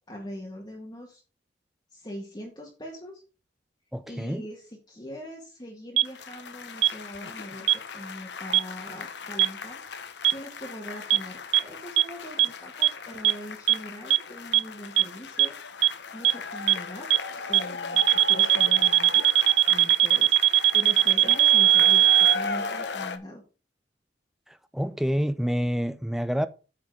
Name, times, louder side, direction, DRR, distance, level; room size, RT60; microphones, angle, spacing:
voice 1, 0.1-1.2 1.9-3.2 4.1-7.7 7.9-15.6 16.1-17.1 17.5-19.3 19.7-20.4 20.7-23.4, equal, 25° left, 1.7 m, -41 dB
voice 2, 3.9-4.5 24.5-26.5, equal, ahead, 0.4 m, -28 dB
sound 1, 6.0-23.2, left 4 dB, 75° left, 0.8 m, -37 dB
sound 2, 6.0-6.1 6.8-6.9 7.7-7.8 8.5-8.6 9.4-9.5 10.2-10.3 11.1-11.2 11.5-11.6 12.0-12.1 12.4-12.5 12.8-12.9 13.2-13.3 13.7-13.8 14.1-14.2 14.5-14.6 15.0-15.1 15.4-15.5 15.8-15.9 16.2-16.3 16.7-16.8 17.1-17.2 17.5-17.6 18.0-22.4, right 14 dB, 85° right, 0.3 m, -18 dB
8.8 x 4.3 x 5.2 m
head